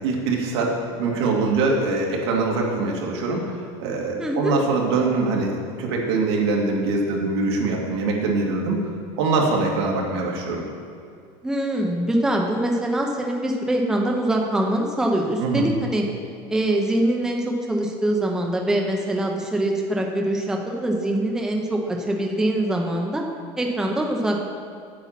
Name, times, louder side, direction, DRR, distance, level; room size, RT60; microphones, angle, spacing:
voice 1, 0.0-3.5 3.8-8.8 9.2-10.6 15.4-15.6, right 3 dB, 90° right, -1 dB, 2.2 m, -23 dB
voice 2, 4.2-4.6 11.4-16.0 16.5-23.2 23.6-24.4, right 1 dB, 5° right, 1 dB, 0.7 m, -23 dB
8.6 x 8.3 x 5.8 m, 2.4 s
cardioid pair, 170°, 13 cm